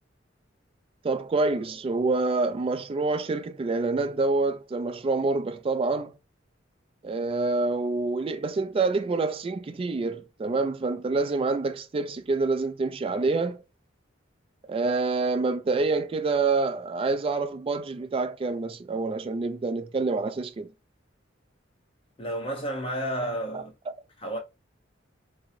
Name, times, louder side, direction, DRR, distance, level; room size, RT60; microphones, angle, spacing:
voice 1, 1.0-6.1 7.0-13.6 14.7-20.7 23.5-23.9, right 3 dB, 30° right, 0.3 m, -27 dB
voice 2, 22.2-23.7 24.2-24.4, right 1 dB, 30° left, 1.0 m, -31 dB
3.6 x 2.0 x 2.8 m
head